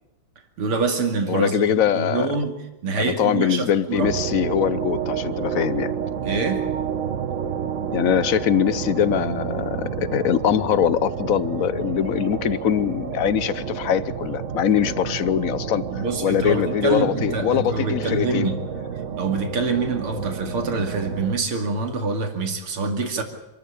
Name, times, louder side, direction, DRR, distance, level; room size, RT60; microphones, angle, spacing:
voice 1, 0.6-2.6 2.8-4.1 6.2-6.7 15.9-18.6 19.2-23.2, right 4 dB, 85° right, 4 dB, 3.3 m, -25 dB
voice 2, 1.3-2.3 3.0-5.9 7.9-18.5, left 9 dB, 55° left, 15 dB, 0.9 m, -22 dB
sound 1, 4.0-21.4, right 7 dB, 45° right, 1.2 m, -30 dB
27.0 x 13.5 x 8.5 m, 1.0 s
omnidirectional pair, 2.3 m